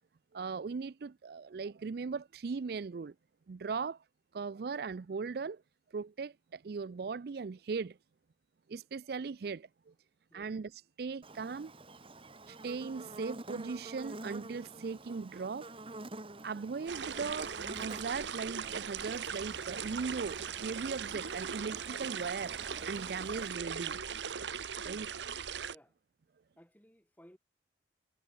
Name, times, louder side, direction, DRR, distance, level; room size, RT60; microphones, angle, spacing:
voice 1, 0.3-3.1 3.5-4.0 4.3-5.6 5.9-8.0 8.7-9.9 10.3-10.7 11.0-11.7 12.5-15.7 16.4-22.6 22.8-24.0 24.8-25.1, right 5 dB, 60° right, 0.4 m, -38 dB
Buzz, 11.2-23.5, right 2 dB, 30° right, 2.2 m, -49 dB
sound 1, 16.9-25.7, right 7 dB, 85° right, 1.0 m, -39 dB
voice 2, 25.6-26.0 26.6-27.4, equal, 10° left, 7.7 m, -59 dB
head